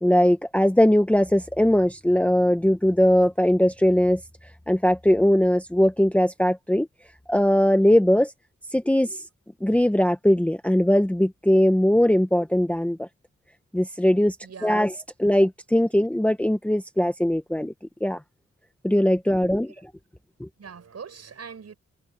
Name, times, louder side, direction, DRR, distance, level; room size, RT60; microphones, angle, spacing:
voice 1, 0.0-4.2 4.7-6.9 7.3-8.3 8.7-9.2 9.6-13.1 13.7-14.4 14.6-14.9 15.2-17.7 18.0-18.2 18.8-19.7 20.4-20.5, equal, 5° left, 1.0 m, -20 dB
voice 2, 14.4-14.9 19.6-19.7 20.6-21.7, right 6 dB, 60° right, 6.3 m, -42 dB
wide cardioid pair, 165°, 29 cm